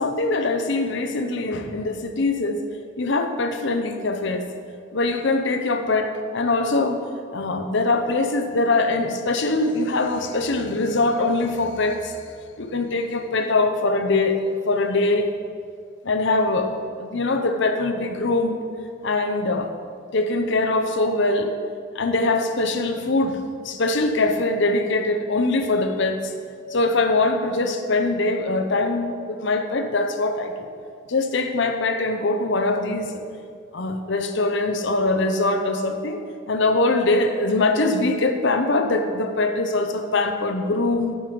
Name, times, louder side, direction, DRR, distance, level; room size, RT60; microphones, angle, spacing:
voice 1, 0.0-2.6 3.0-4.5 4.9-7.0 7.3-12.2 12.6-14.4 14.7-15.3 16.0-16.7 17.0-18.6 19.0-19.7 20.1-21.5 21.9-26.3 26.7-30.7 31.1-33.1 33.7-36.2 36.5-41.2, left 2 dB, 55° left, 6 dB, 0.8 m, -22 dB
12.0 x 5.5 x 5.2 m, 2.2 s
head